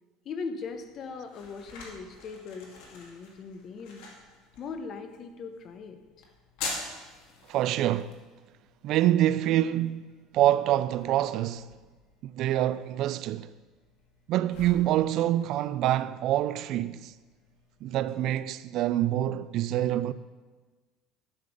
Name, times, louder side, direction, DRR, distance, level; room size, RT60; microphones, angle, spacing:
voice 1, 0.2-4.1 4.6-6.2, left 5 dB, 35° left, 1.0 m, -40 dB
sound 1, 0.6-18.2, left 3 dB, 80° left, 2.3 m, -46 dB
voice 2, 7.5-8.1 8.8-11.7 12.2-13.5 14.3-17.1 17.8-20.1, right 13 dB, 50° right, 0.3 m, -26 dB
11.5 x 6.7 x 5.3 m
cardioid pair, 160°, 0 cm